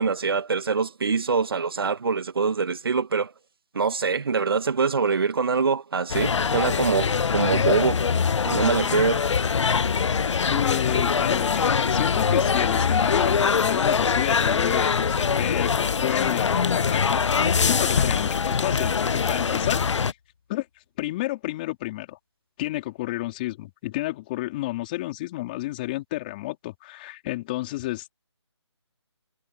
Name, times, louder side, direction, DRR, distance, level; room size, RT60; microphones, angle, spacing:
voice 1, 0.0-3.3 3.7-8.0 8.4-9.2, right 5 dB, 55° right, 1.7 m, -24 dB
sound 1, 6.1-20.1, left 6 dB, 90° left, 0.4 m, -23 dB
voice 2, 10.5-20.2 20.5-20.7 21.0-22.2 22.6-28.1, left 18 dB, 20° left, 4.2 m, -31 dB
sound 2, 18.0-20.0, left 7 dB, 35° left, 2.0 m, -32 dB
figure-of-eight pair, 165°, 15 cm